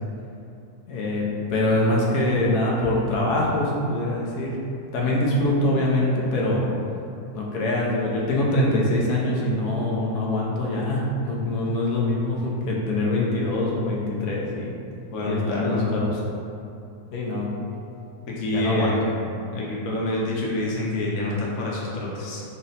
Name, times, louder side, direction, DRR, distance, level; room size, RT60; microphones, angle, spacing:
voice 1, 0.9-4.6 4.9-6.6 7.3-14.7 15.2-16.2 17.1-17.5 18.5-19.0, left 1 dB, 85° left, -4 dB, 1.2 m, -24 dB
voice 2, 15.1-15.9 18.3-18.9 19.5-22.4, left 1 dB, 65° left, -4 dB, 1.0 m, -27 dB
3.9 x 2.1 x 3.9 m, 2.7 s
omnidirectional pair, 1.7 m